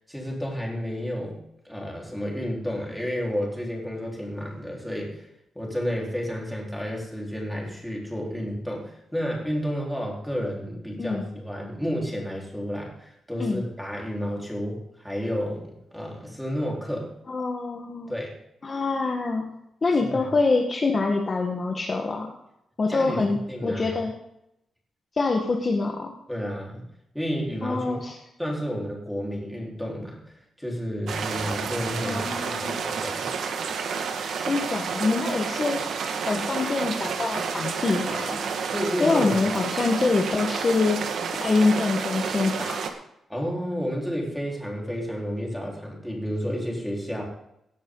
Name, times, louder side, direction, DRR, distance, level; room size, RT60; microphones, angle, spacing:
voice 1, 0.1-1.4 1.6-5.3 5.5-17.1 18.1-18.3 20.0-20.3 22.9-23.9 26.3-26.8 27.1-28.0 28.4-33.3 38.7-39.5 43.3-47.2, equal, ahead, -2 dB, 4.2 m, -31 dB
voice 2, 17.3-18.1 18.6-19.5 19.8-22.3 22.8-24.1 25.2-26.1 27.6-28.1 32.0-33.0 34.5-35.8 36.3-38.4 39.0-41.0 41.3-42.8, left 3 dB, 35° left, 2 dB, 1.5 m, -25 dB
sound 1, 31.1-42.9, right 6 dB, 75° right, 1.7 m, -30 dB
17.5 x 10.5 x 3.9 m, 0.80 s
wide cardioid pair, 140°, 0 cm